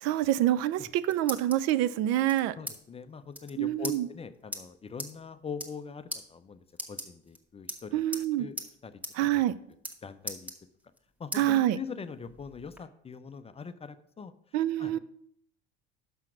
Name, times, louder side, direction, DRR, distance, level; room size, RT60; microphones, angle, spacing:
voice 1, 0.0-2.6 3.6-4.1 7.9-8.5 9.1-9.6 11.3-11.8 14.5-15.0, right 13 dB, 60° right, 0.5 m, -26 dB
sound 1, 0.7-1.7 2.3-2.8 3.0-3.1 3.3-3.5 3.8-4.0 4.5-4.6 5.0-5.1 5.5-5.8 6.1-6.2 6.7-7.4 7.7-8.3 8.6-8.7 9.0-9.1 9.4-10.0 10.3-11.0 11.3-11.4 11.9-12.8, equal, 5° right, 1.3 m, -39 dB
voice 2, 2.6-8.0 8.4-9.0 9.3-9.4 10.0-10.5 11.2-14.3 14.8-15.0, left 5 dB, 20° left, 0.5 m, -42 dB
6.0 x 5.7 x 6.0 m
hypercardioid pair, 75°, 30 cm